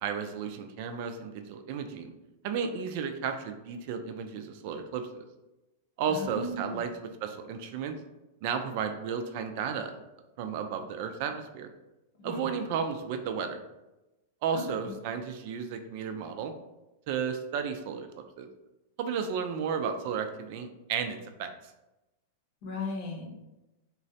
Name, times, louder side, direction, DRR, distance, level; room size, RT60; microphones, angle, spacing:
voice 1, 0.0-2.1 2.4-5.3 6.0-6.9 7.2-8.0 8.4-10.0 10.4-11.7 12.2-13.6 14.4-16.5 17.1-18.1 18.4-18.5 19.0-21.5, right 6 dB, 55° right, 7 dB, 0.3 m, -33 dB
voice 2, 6.1-6.8 12.2-12.5 14.5-14.9 22.6-23.3, left 2 dB, 55° left, 0 dB, 0.8 m, -37 dB
3.8 x 2.1 x 2.7 m, 1.0 s
hypercardioid pair, 130°, 0 cm